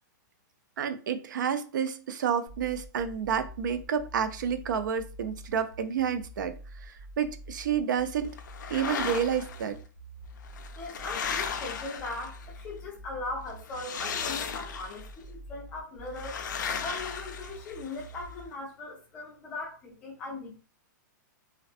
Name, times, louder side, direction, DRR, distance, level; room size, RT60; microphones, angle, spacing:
voice 1, 0.8-8.3 8.7-9.8, right 8 dB, 75° right, 0.4 m, -30 dB
sound 1, 2.5-18.5, equal, 60° right, 0.9 m, -46 dB
sound 2, 8.4-9.6 10.4-12.6 13.7-15.1 16.2-18.1, left 6 dB, 70° left, 0.4 m, -35 dB
voice 2, 10.8-16.3 16.8-20.6, left 2 dB, 10° left, 0.4 m, -39 dB
2.5 x 2.2 x 2.4 m
hypercardioid pair, 180°, 10 cm